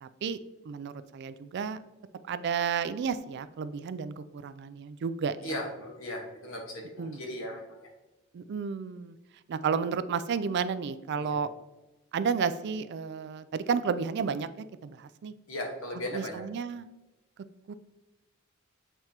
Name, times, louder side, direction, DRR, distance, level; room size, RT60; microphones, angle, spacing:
voice 1, 0.0-0.4 0.6-1.8 2.3-5.5 7.0-7.2 8.3-9.2 9.5-11.5 12.1-14.5 14.8-15.3 16.1-16.9 17.7-17.8, right 6 dB, 50° right, 13 dB, 0.3 m, -32 dB
voice 2, 5.4-7.9 11.1-11.4 15.5-16.4, left 1 dB, 65° left, 1 dB, 1.4 m, -37 dB
7.7 x 4.5 x 2.9 m, 1.0 s
head